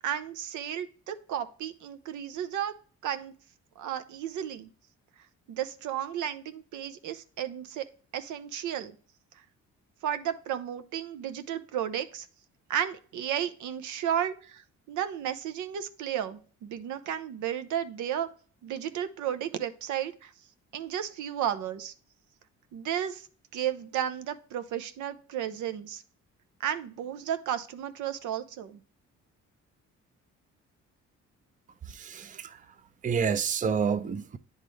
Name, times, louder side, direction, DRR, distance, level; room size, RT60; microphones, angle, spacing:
voice 1, 0.0-2.7 3.0-3.3 3.8-4.7 5.5-8.9 10.0-12.3 12.7-14.6 14.9-18.3 18.6-20.3 20.7-21.9 22.7-23.3 23.5-26.0 26.6-28.8, right 10 dB, 80° right, 0.7 m, -33 dB
voice 2, 31.9-32.6 33.0-34.4, right 6 dB, 25° right, 0.5 m, -29 dB
9.5 x 3.7 x 3.1 m
cardioid pair, 90°, 30 cm